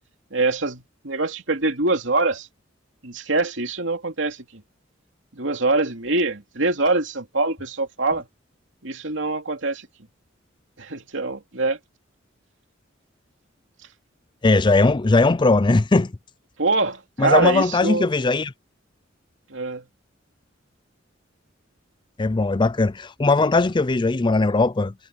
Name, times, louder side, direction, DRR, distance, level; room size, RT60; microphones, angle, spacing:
voice 1, 0.3-2.5 3.0-4.6 5.3-8.3 8.8-9.9 10.8-11.8 16.6-18.1 19.5-19.8, right 3 dB, 75° right, 2.8 m, -24 dB
voice 2, 14.4-16.1 17.2-18.5 22.2-24.9, left 3 dB, 25° left, 0.5 m, -19 dB
head